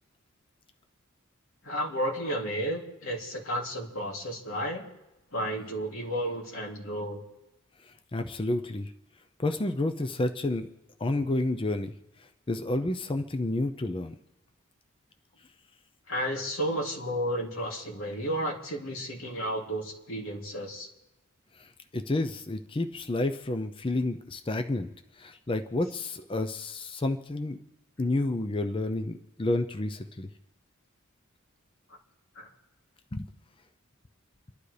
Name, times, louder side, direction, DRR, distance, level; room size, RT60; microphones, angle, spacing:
voice 1, 1.6-4.9 5.3-7.2 16.1-20.9 32.3-32.5, equal, 90° left, -1 dB, 2.9 m, -32 dB
voice 2, 7.8-8.9 9.4-10.7 11.0-11.9 12.5-14.2 21.5-24.9 25.2-27.6 28.0-30.3 33.1-33.2, left 2 dB, 25° left, 8 dB, 0.6 m, -30 dB
30.0 x 12.0 x 3.3 m, 0.99 s
head